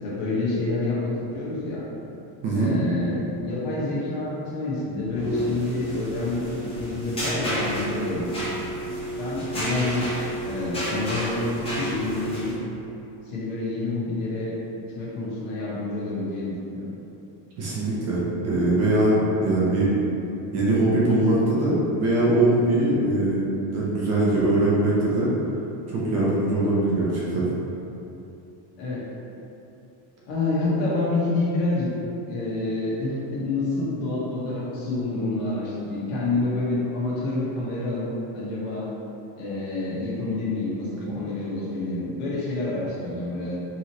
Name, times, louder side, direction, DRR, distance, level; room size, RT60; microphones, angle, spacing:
voice 1, 0.0-1.8 2.5-8.4 9.2-10.1 10.4-12.5 13.2-14.5 14.9-16.9 28.8-29.0 30.3-31.9 32.3-38.9 39.4-43.6, left 2 dB, 70° left, -8 dB, 1.5 m, -28 dB
voice 2, 2.4-2.8 17.6-19.9 20.5-23.5 23.7-25.3 25.9-27.5 41.1-41.2, right 1 dB, 30° right, -7 dB, 0.6 m, -22 dB
sound 1, 5.0-12.5, equal, 10° left, 0.8 m, -31 dB
4.7 x 3.0 x 2.9 m, 2.9 s
cardioid pair, 180°, 49 cm